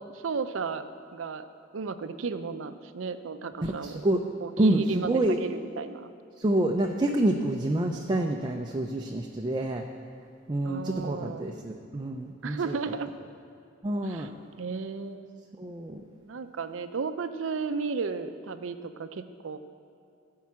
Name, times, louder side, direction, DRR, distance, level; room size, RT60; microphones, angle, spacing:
voice 1, 0.0-1.5 1.7-4.0 4.4-6.1 10.6-11.6 12.4-13.1 14.0-14.3 14.6-15.5 16.2-19.6, right 5 dB, 85° right, 11 dB, 0.5 m, -34 dB
voice 2, 3.8-4.2 4.6-5.4 6.4-9.8 10.5-12.8 13.8-14.3 15.6-16.0, right 1 dB, 25° right, 2 dB, 0.5 m, -27 dB
13.5 x 4.7 x 7.3 m, 2.5 s
head